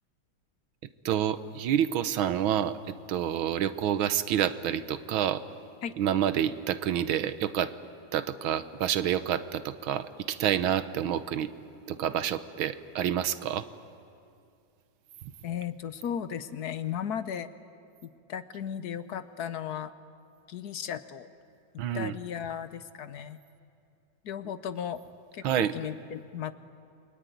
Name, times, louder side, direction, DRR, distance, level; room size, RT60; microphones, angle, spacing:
voice 1, 1.1-5.4 6.0-7.7 8.1-11.5 11.9-13.7 15.2-15.3 21.8-22.1 25.4-25.7, right 10 dB, 85° right, 13 dB, 1.7 m, -28 dB
voice 2, 15.4-17.5 18.0-19.9 20.5-21.3 21.9-23.4 24.2-25.0 25.3-26.5, left 8 dB, 60° left, 13 dB, 1.2 m, -35 dB
28.5 x 22.0 x 9.4 m, 2.4 s
omnidirectional pair, 2.2 m